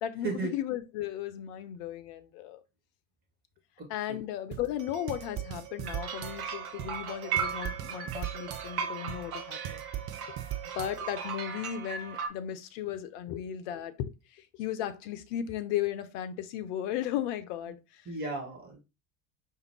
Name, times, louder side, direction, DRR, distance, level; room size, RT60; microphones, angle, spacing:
voice 1, 0.0-2.6 3.9-9.8 10.7-18.0, left 11 dB, 55° left, 0.7 m, -35 dB
voice 2, 3.8-4.2 18.1-18.8, right 3 dB, 20° right, 1.9 m, -35 dB
sound 1, 4.5-11.4, right 12 dB, 40° right, 0.7 m, -40 dB
sound 2, 5.8-12.3, right 6 dB, 80° right, 0.7 m, -37 dB
5.0 x 2.6 x 3.0 m
figure-of-eight pair, 75°, 43 cm